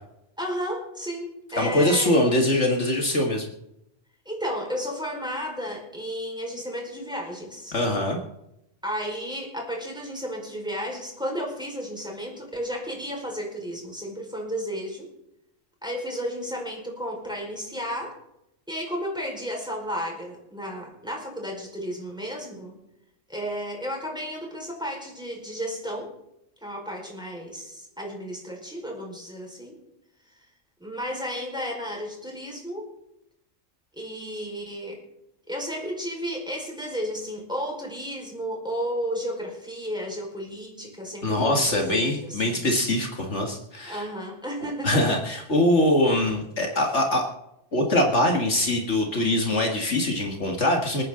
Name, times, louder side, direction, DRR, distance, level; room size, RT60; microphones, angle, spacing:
voice 1, 0.4-2.2 4.2-7.8 8.8-15.1 15.8-18.2 18.7-22.8 23.3-26.1 26.6-29.8 30.8-32.9 33.9-35.0 35.5-42.6 43.8-45.2 46.0-46.3, equal, 5° right, -1 dB, 4.9 m, -33 dB
voice 2, 1.6-3.5 7.7-8.2 41.2-44.1 44.8-47.3 47.7-51.0, left 1 dB, 60° left, 2 dB, 2.2 m, -23 dB
27.5 x 9.6 x 3.9 m, 0.84 s
omnidirectional pair, 1.3 m